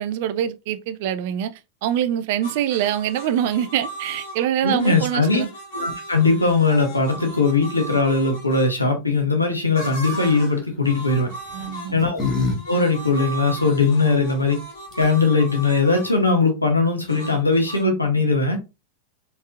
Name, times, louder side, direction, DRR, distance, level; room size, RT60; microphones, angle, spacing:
voice 1, 0.0-1.5 1.8-5.5 11.5-12.1, right 10 dB, 50° right, 0.4 m, -24 dB
sound 1, 2.4-8.7 9.7-10.6 10.8-16.2 17.1-17.8, right 2 dB, 50° left, 1.5 m, -37 dB
voice 2, 4.6-5.4 5.7-11.3 11.9-12.2 12.7-14.6 15.0-18.6, left 3 dB, 85° left, 1.3 m, -20 dB
sound 2, 10.1-10.5 11.5-12.6 12.9-13.0 14.6-14.7 14.9-15.3, left 4 dB, 25° left, 1.5 m, -27 dB
4.2 x 3.4 x 2.4 m
figure-of-eight pair, 90°, 0 cm